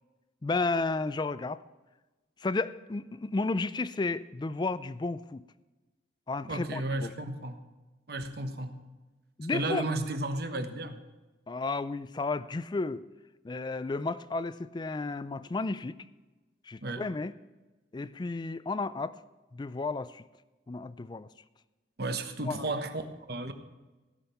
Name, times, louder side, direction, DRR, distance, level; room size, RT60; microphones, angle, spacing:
voice 1, 0.4-1.6 2.4-5.4 6.3-7.1 9.4-9.8 11.5-13.0 13.4-16.0 16.7-17.3 17.9-19.2 19.5-20.2 20.7-21.3 22.5-22.6, left 3 dB, 25° left, 16 dB, 0.4 m, -32 dB
voice 2, 6.5-7.6 8.1-8.8 9.5-11.0 16.8-17.1 22.0-23.5, right 2 dB, 60° right, 8 dB, 1.0 m, -33 dB
16.5 x 6.2 x 5.7 m, 1.2 s
head